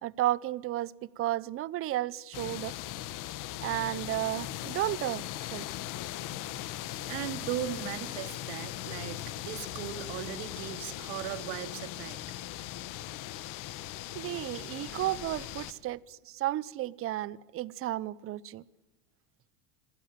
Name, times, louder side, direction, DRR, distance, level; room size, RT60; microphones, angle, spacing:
voice 1, 0.0-2.7 3.6-5.7 14.1-18.6, right 15 dB, 30° right, 0.7 m, -33 dB
sound 1, 2.3-15.7, left 14 dB, 45° left, 1.7 m, -39 dB
voice 2, 7.1-12.2, right 12 dB, 60° right, 2.5 m, -38 dB
28.0 x 21.5 x 7.5 m
supercardioid pair, 135°, 45 cm